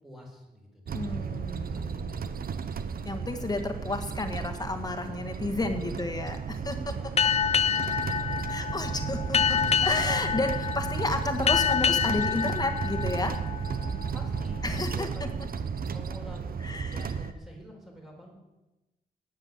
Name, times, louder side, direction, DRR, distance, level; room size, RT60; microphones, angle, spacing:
voice 1, 0.0-1.3 1.7-2.9 5.9-6.3 6.6-7.2 7.5-8.6 14.1-14.7 14.9-18.4, equal, ahead, 0 dB, 4.3 m, -49 dB
voice 2, 0.9-2.3 3.1-7.0 8.5-13.4 14.6-15.1 16.6-17.1, left 2 dB, 25° left, 7 dB, 1.7 m, -32 dB
sound 1, 0.9-17.3, right 6 dB, 70° right, 0.9 m, -34 dB
Boat Water vehicle, 7.2-14.2, left 7 dB, 40° left, 0.4 m, -27 dB
18.0 x 9.3 x 7.4 m, 1.1 s
wide cardioid pair, 175°, 16 cm